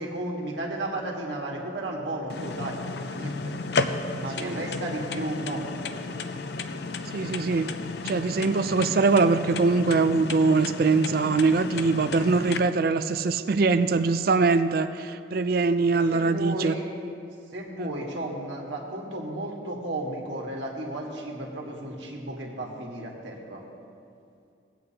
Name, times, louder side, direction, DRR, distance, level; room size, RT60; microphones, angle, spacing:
voice 1, 0.0-2.8 3.1-3.5 4.1-5.6 12.0-12.1 15.9-16.9 17.5-23.6, right 1 dB, 75° right, -1 dB, 1.6 m, -33 dB
sound 1, 2.3-12.6, left 3 dB, 55° left, 0.5 m, -33 dB
voice 2, 7.1-7.7 8.0-16.7 17.8-17.9, right 4 dB, 50° right, 11 dB, 0.4 m, -23 dB
18.0 x 8.7 x 2.9 m, 2.5 s
head